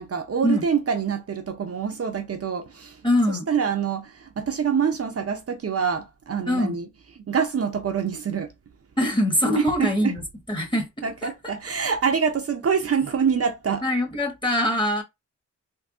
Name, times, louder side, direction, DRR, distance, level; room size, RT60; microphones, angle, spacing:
voice 1, 0.0-3.0 3.3-6.9 7.3-8.5 9.6-10.1 11.0-13.8, right 6 dB, 55° right, 0.6 m, -25 dB
voice 2, 3.0-3.5 6.5-6.8 9.0-10.2 10.5-10.9 11.2-11.3 13.8-15.0, left 1 dB, 15° left, 1.3 m, -23 dB
3.5 x 2.2 x 2.4 m
wide cardioid pair, 70°, 29 cm